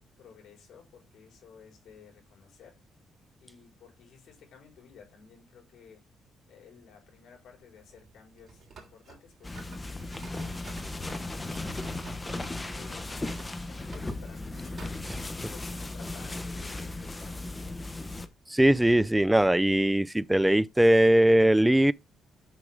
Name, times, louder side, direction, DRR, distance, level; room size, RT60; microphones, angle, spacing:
voice 1, 0.2-2.8 3.4-6.0 6.5-11.9 12.4-14.8 15.5-18.3, left 6 dB, 75° left, 5.0 m, -55 dB
sound 1, 7.8-15.1, right 5 dB, 50° right, 3.0 m, -51 dB
sound 2, 9.4-18.3, left 2 dB, 20° left, 1.0 m, -36 dB
voice 2, 18.5-21.9, right 1 dB, 10° right, 0.4 m, -21 dB
7.7 x 5.9 x 3.6 m
cardioid pair, 90°, 0 cm